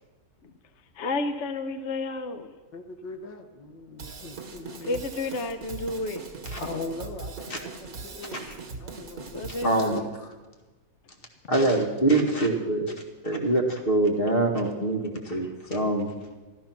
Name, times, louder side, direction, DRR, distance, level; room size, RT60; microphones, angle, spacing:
voice 1, 0.9-2.5 4.8-6.3 9.3-10.0, left 2 dB, 50° left, 8 dB, 0.9 m, -31 dB
voice 2, 2.7-5.1 6.6-8.5 8.8-9.3, left 3 dB, 85° left, 6 dB, 1.9 m, -40 dB
Drum kit / Drum, 4.0-10.0, right 4 dB, 55° right, 1.8 m, -40 dB
voice 3, 9.6-10.0 11.5-12.9 13.2-16.1, right 2 dB, 30° left, 2 dB, 2.0 m, -24 dB
14.0 x 13.5 x 6.0 m, 1.2 s
omnidirectional pair, 1.9 m